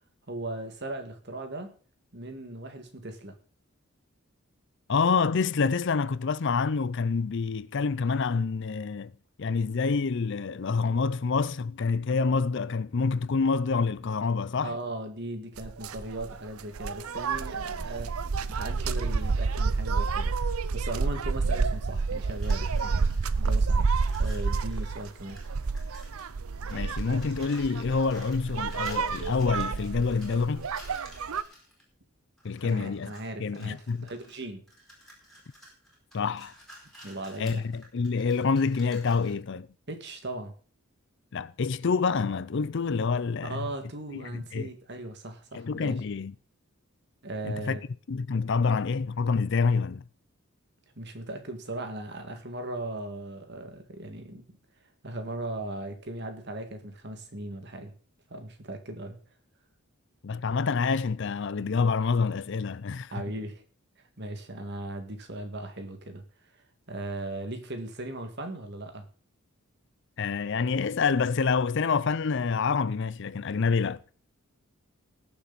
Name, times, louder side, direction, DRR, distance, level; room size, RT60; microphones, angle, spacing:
voice 1, 0.3-1.8 2.1-3.4 14.6-18.1 18.5-23.1 23.4-25.4 32.6-34.6 37.0-37.6 39.9-40.5 43.5-46.0 47.2-47.8 51.0-54.4 55.0-57.9 58.3-59.2 63.1-63.6 64.0-69.1, right 1 dB, 50° right, 2.0 m, -38 dB
voice 2, 4.9-9.1 9.4-14.7 26.7-30.7 32.4-33.1 33.4-34.1 36.1-36.5 37.4-39.7 41.3-43.7 44.1-44.7 45.5-46.3 47.4-47.8 48.1-50.0 60.2-63.2 70.2-74.0, left 5 dB, 55° left, 0.5 m, -27 dB
sound 1, 15.6-31.4, right 4 dB, 85° right, 0.7 m, -29 dB
sound 2, 22.2-23.5 23.8-26.4 26.7-31.8 32.4-33.2 33.5-39.4, equal, ahead, 4.5 m, -52 dB
20.0 x 7.3 x 4.1 m
head